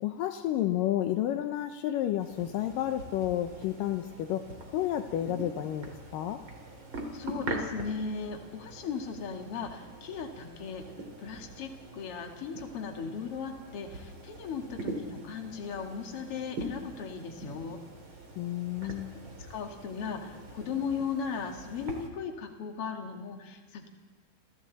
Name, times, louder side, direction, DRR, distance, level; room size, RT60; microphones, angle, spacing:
voice 1, 0.0-6.4 18.4-19.2, left 12 dB, 85° left, 7 dB, 1.9 m, -31 dB
sound 1, 2.2-22.1, right 2 dB, 30° right, 3.3 m, -43 dB
voice 2, 7.1-10.8 11.2-17.8 18.8-19.2 19.5-23.9, left 6 dB, 45° left, 3 dB, 2.2 m, -37 dB
29.0 x 27.5 x 4.2 m, 1.3 s
omnidirectional pair, 5.0 m